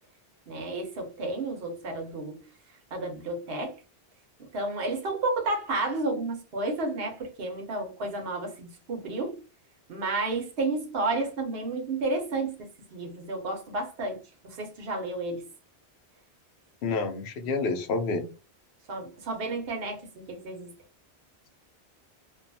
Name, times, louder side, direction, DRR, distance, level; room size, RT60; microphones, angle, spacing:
voice 1, 0.5-2.4 2.9-3.8 4.5-9.4 9.9-14.2 14.4-15.4 18.9-20.7, right 2 dB, 65° right, 1.0 m, -31 dB
voice 2, 16.8-18.2, left 3 dB, 80° left, 0.8 m, -28 dB
2.6 x 2.3 x 2.6 m
omnidirectional pair, 1.1 m